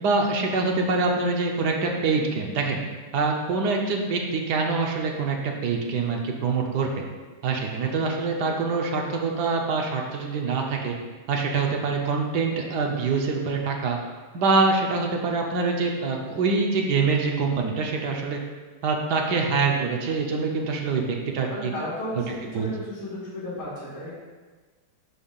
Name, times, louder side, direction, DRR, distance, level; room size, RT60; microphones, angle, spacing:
voice 1, 0.0-2.8 3.1-6.9 7.4-10.9 11.3-14.0 14.3-18.4 18.8-21.7 22.5-22.7, right 4 dB, 65° right, 1 dB, 1.2 m, -25 dB
voice 2, 21.5-24.1, left 1 dB, 75° left, -10 dB, 3.0 m, -34 dB
10.0 x 5.5 x 2.4 m, 1.3 s
omnidirectional pair, 2.3 m